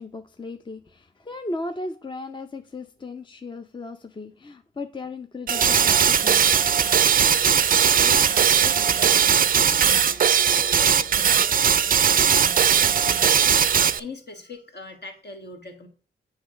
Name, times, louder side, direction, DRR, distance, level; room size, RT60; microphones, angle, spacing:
voice 1, 0.0-6.6, left 2 dB, 25° left, 0.5 m, -36 dB
sound 1, 5.5-14.0, right 8 dB, 45° right, 0.4 m, -19 dB
voice 2, 7.9-15.9, left 3 dB, 55° left, 1.5 m, -41 dB
8.0 x 3.2 x 4.8 m
cardioid pair, 55°, 21 cm